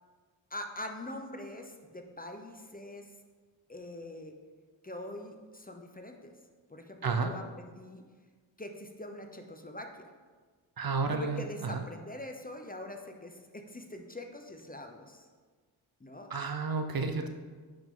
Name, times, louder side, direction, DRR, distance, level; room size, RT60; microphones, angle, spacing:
voice 1, 0.5-3.1 3.7-4.3 4.8-6.3 6.7-8.0 8.6-10.1 11.1-15.3 16.0-16.3, left 1 dB, 20° left, 4 dB, 0.8 m, -43 dB
voice 2, 7.0-7.3 10.8-11.8 16.3-17.3, right 4 dB, 45° right, 6 dB, 0.7 m, -31 dB
9.2 x 5.2 x 3.8 m, 1.5 s
cardioid pair, 60°, 49 cm